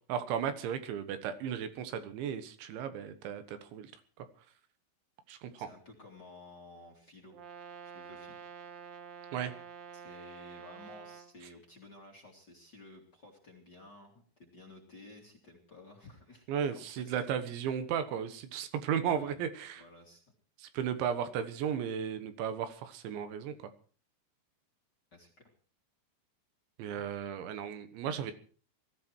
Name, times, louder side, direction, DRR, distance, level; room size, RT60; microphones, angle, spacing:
voice 1, 0.1-3.9 5.3-5.7 9.3-9.5 16.5-19.8 20.6-23.5 26.8-28.3, right 8 dB, 80° right, 10 dB, 3.6 m, -35 dB
voice 2, 5.6-7.4 7.9-8.4 9.9-16.4 16.7-17.6 19.1-19.4 19.7-20.2 25.1-25.3, left 2 dB, 30° left, 1 dB, 2.5 m, -54 dB
Brass instrument, 7.3-11.3, right 7 dB, 65° right, 2.6 m, -48 dB
20.5 x 14.0 x 4.5 m, 0.41 s
omnidirectional pair, 5.3 m